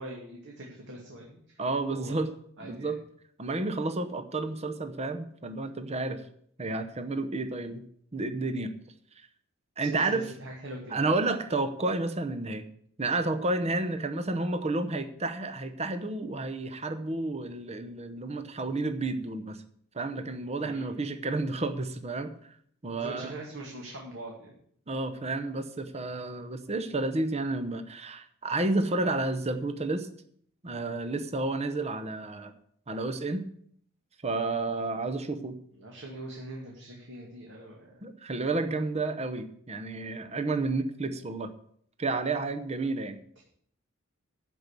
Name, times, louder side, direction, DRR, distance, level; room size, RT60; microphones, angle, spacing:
voice 1, 0.0-1.4 1.9-2.2 2.6-2.9 9.8-11.1 20.6-21.0 22.9-24.5 35.7-38.1 43.4-43.5, right 1 dB, 60° right, -2 dB, 2.2 m, -42 dB
voice 2, 1.6-2.3 2.6-3.0 3.4-6.2 6.6-7.8 8.1-8.7 9.8-10.3 10.9-12.6 13.0-19.6 19.9-22.3 22.8-23.3 24.9-30.1 30.6-32.5 32.9-33.5 34.2-35.6 38.0-41.5 42.0-43.2, right 2 dB, 30° right, 9 dB, 0.9 m, -31 dB
12.5 x 5.3 x 8.3 m, 0.63 s
head